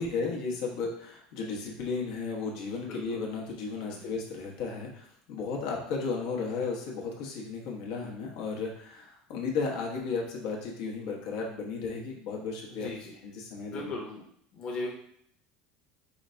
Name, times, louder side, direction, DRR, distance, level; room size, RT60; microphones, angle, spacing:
voice 1, 0.0-12.9 13.2-13.9, left 4 dB, 75° left, -1 dB, 1.0 m, -34 dB
voice 2, 12.7-13.1 13.7-14.2 14.5-14.9, left 2 dB, 35° left, -2 dB, 0.9 m, -37 dB
4.9 x 2.6 x 3.2 m, 0.67 s
cardioid pair, 150°, 3 cm